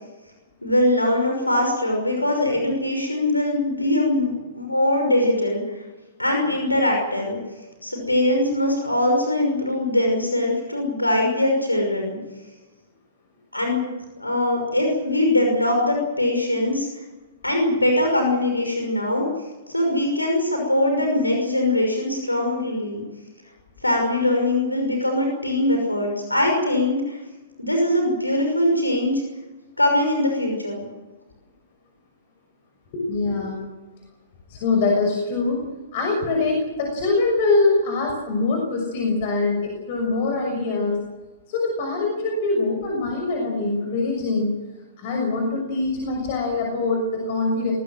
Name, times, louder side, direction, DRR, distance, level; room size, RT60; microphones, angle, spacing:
voice 1, 0.6-5.8 6.2-7.4 7.8-12.2 13.5-17.0 17.4-19.3 19.7-23.0 23.8-27.2 27.6-29.2 29.8-30.8, left 1 dB, 85° left, 2 dB, 5.8 m, -22 dB
voice 2, 32.9-33.6 34.5-41.0 41.5-44.5 45.0-47.7, left 3 dB, 45° left, 1 dB, 6.4 m, -23 dB
23.5 x 19.0 x 7.8 m, 1.2 s
figure-of-eight pair, 110°, 0 cm